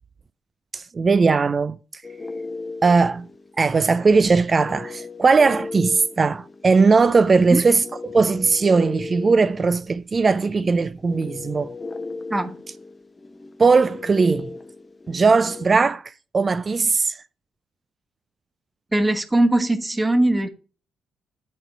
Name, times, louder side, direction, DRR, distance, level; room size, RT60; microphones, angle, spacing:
voice 1, 0.7-2.0 2.8-3.3 3.6-11.7 13.6-14.5 15.1-17.2, right 4 dB, 35° right, 0.4 m, -19 dB
sound 1, 2.0-15.7, left 3 dB, 25° left, 0.9 m, -37 dB
voice 2, 18.9-20.5, right 1 dB, 15° right, 1.3 m, -20 dB
10.5 x 4.1 x 6.9 m
figure-of-eight pair, 40°, 0 cm